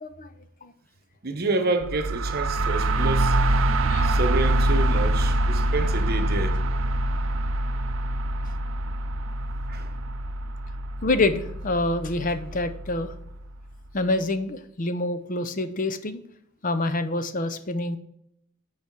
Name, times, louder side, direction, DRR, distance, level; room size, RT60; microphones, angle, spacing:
voice 1, 0.0-0.3 0.6-0.7 3.9-4.2 11.0-13.1 13.9-16.2 16.6-18.0, left 2 dB, 40° left, 0.6 m, -26 dB
voice 2, 1.2-3.4 4.0-6.6 9.7-9.9, right 2 dB, 45° right, 0.9 m, -28 dB
sound 1, 1.8-13.5, right 1 dB, 65° right, 0.5 m, -25 dB
8.1 x 4.9 x 4.5 m
head